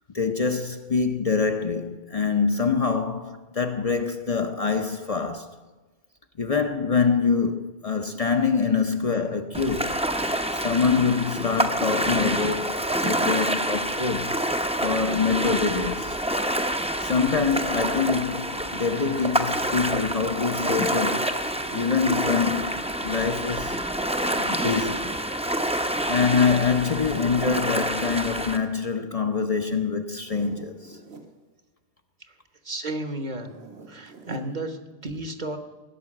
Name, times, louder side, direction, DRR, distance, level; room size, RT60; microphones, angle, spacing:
voice 1, 0.1-5.5 6.4-10.0 10.5-14.4 14.8-16.2 17.0-21.3 21.7-23.8 24.4-25.2 25.8-31.0, left 5 dB, 40° left, 0.8 m, -25 dB
Ocean, 9.5-28.6, right 1 dB, 5° right, 0.7 m, -27 dB
Zipper (clothing), 21.0-21.9 23.9-25.0 26.6-27.7 30.1-31.3 33.3-34.5, right 4 dB, 85° right, 1.9 m, -46 dB
voice 2, 32.6-33.5 33.9-35.6, right 1 dB, 45° right, 1.2 m, -33 dB
17.0 x 6.9 x 9.7 m
omnidirectional pair, 1.1 m